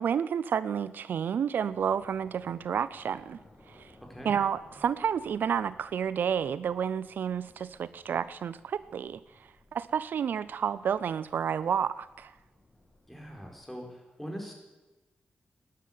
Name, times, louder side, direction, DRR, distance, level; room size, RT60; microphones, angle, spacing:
voice 1, 0.0-3.4 3.7-3.9 4.2-12.3, right 8 dB, 75° right, 16 dB, 0.5 m, -30 dB
sound 1, 1.7-13.5, left 1 dB, 30° left, 4.2 m, -59 dB
voice 2, 13.1-14.5, equal, 5° left, 1 dB, 4.3 m, -42 dB
12.0 x 11.0 x 9.6 m, 1.1 s
wide cardioid pair, 110°, 3 cm